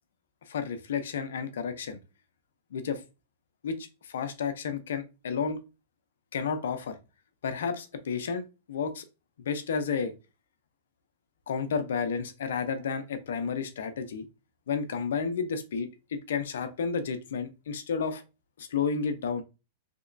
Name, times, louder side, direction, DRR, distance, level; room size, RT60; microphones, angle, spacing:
voice 1, 0.5-2.0 2.7-3.0 3.6-5.6 6.3-7.0 7.4-8.4 8.7-9.1 9.4-10.1 11.5-14.3 14.7-18.2 18.6-19.4, left 6 dB, 80° left, 0.6 m, -31 dB
3.5 x 2.9 x 2.6 m
hypercardioid pair, 125°, 0 cm